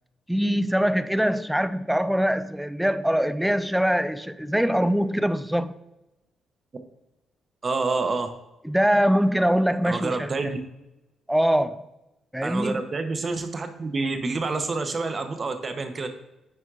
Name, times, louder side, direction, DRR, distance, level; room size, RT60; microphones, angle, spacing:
voice 1, 0.3-5.8 8.6-10.5 11.3-11.8 12.3-12.8, equal, 5° right, 0.3 m, -23 dB
voice 2, 7.6-8.3 9.8-10.6 12.4-16.1, right 3 dB, 35° right, 0.7 m, -28 dB
9.2 x 4.3 x 2.4 m
cardioid pair, 90°, 0 cm